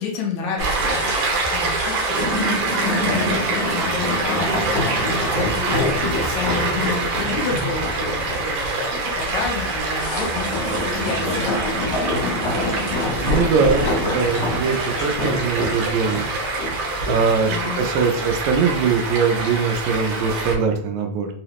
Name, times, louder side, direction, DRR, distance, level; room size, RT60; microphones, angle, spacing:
voice 1, 0.0-12.2 12.6-13.4 17.5-18.3, left 4 dB, 75° left, 0 dB, 1.9 m, -31 dB
Stream, 0.6-20.5, right 3 dB, 70° right, 1.6 m, -25 dB
sound 1, 0.9-18.2 18.5-18.6, left 2 dB, 60° left, 1.1 m, -27 dB
sound 2, 1.4-14.2, left 1 dB, 35° left, 0.8 m, -40 dB
voice 2, 13.2-16.3 17.1-21.3, right 5 dB, 85° right, 5 dB, 2.0 m, -21 dB
4.8 x 2.0 x 2.8 m, 0.67 s
omnidirectional pair, 3.3 m